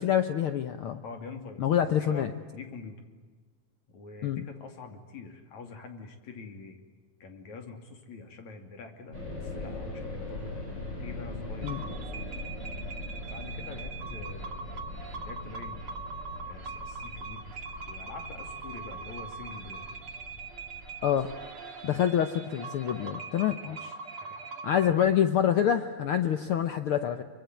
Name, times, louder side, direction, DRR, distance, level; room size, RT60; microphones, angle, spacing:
voice 1, 0.0-1.0 1.6-2.3 4.2-4.5 11.6-11.8 21.0-21.3 21.8-23.9 24.6-27.2, left 9 dB, 80° left, 9 dB, 1.2 m, -26 dB
voice 2, 1.0-1.6 2.0-3.0 3.9-6.8 7.2-10.5 11.0-12.3 13.2-14.7 15.2-15.9 16.5-17.5 17.9-19.9 21.1-21.2 23.6-23.8 24.2-24.5, left 4 dB, 60° left, 6 dB, 4.0 m, -45 dB
sound 1, 9.1-21.5, left 2 dB, 30° left, 6.9 m, -41 dB
sound 2, 11.6-24.9, right 4 dB, 45° right, 2.7 m, -42 dB
25.0 x 24.5 x 9.4 m, 1.4 s
omnidirectional pair, 3.8 m